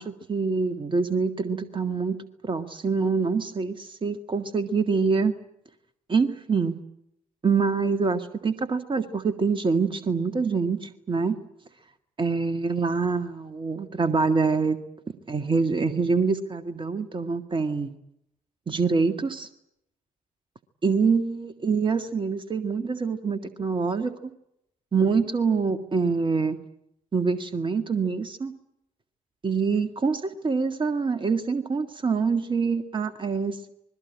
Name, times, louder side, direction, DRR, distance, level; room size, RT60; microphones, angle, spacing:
voice 1, 0.0-2.2 2.4-5.3 6.1-6.8 7.4-11.4 12.2-14.8 15.3-17.9 18.7-19.5 20.8-24.1 24.9-26.6 27.1-28.5 29.4-33.7, right 4 dB, 25° right, 9 dB, 1.9 m, -25 dB
26.5 x 21.0 x 8.6 m, 0.77 s
figure-of-eight pair, 45°, 19 cm